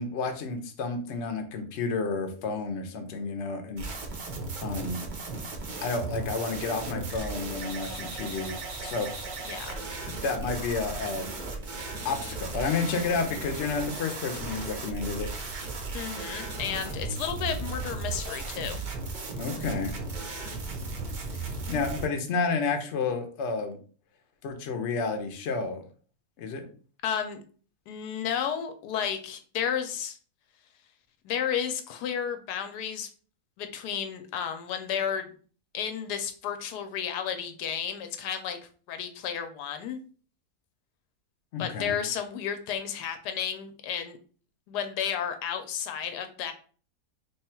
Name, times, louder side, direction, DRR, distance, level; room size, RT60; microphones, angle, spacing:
voice 1, 0.0-3.9 4.6-5.0 5.8-9.1 10.1-11.3 12.0-15.3 19.4-19.9 21.7-23.8 24.4-25.8 26.4-26.6 41.5-42.0, left 4 dB, 60° left, 5 dB, 0.8 m, -31 dB
sound 1, 3.8-22.1, right 3 dB, 55° right, 0.5 m, -36 dB
voice 2, 9.4-9.8 15.9-18.8 27.0-27.4 27.9-30.2 31.2-33.1 33.6-35.3 35.7-38.6 38.9-40.0 41.6-44.2 44.7-46.5, left 8 dB, 80° left, 7 dB, 1.2 m, -32 dB
3.3 x 2.3 x 4.3 m, 0.41 s
omnidirectional pair, 1.8 m